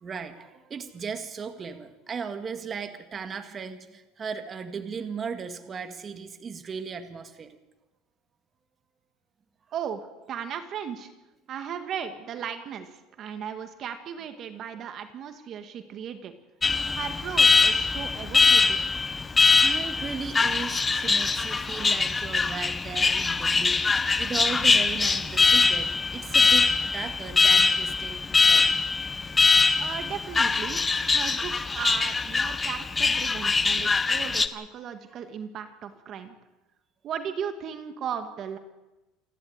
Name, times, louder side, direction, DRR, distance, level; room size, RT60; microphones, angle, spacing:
voice 1, 0.0-7.6 18.9-19.1 19.3-28.7, right 5 dB, 30° right, 7 dB, 2.0 m, -37 dB
voice 2, 10.3-11.1 11.5-16.4 16.9-18.8 29.8-36.3 37.0-38.6, right 8 dB, 45° right, 8 dB, 2.0 m, -36 dB
Alarm, 16.6-34.5, left 4 dB, 20° left, 1.1 m, -23 dB
27.5 x 11.5 x 9.6 m, 1.1 s
supercardioid pair, 120°, 0 cm